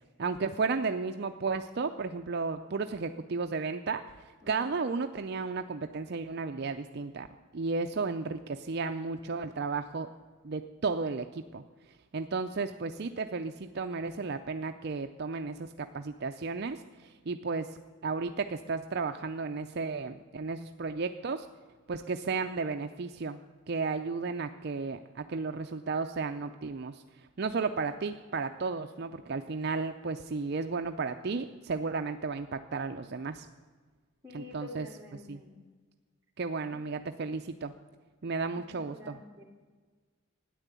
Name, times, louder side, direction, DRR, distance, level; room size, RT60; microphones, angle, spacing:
voice 1, 0.2-4.0 4.5-7.3 7.5-10.1 10.4-11.6 12.1-17.8 18.0-21.5 21.9-23.4 23.7-27.0 27.4-33.5 34.3-34.9 35.1-35.4 36.4-37.7 38.2-39.2, right 4 dB, 50° right, 7 dB, 0.5 m, -33 dB
voice 2, 34.2-35.6 36.7-36.8 38.5-39.4, left 2 dB, 10° right, -2 dB, 2.7 m, -48 dB
13.5 x 10.0 x 8.2 m, 1.4 s
head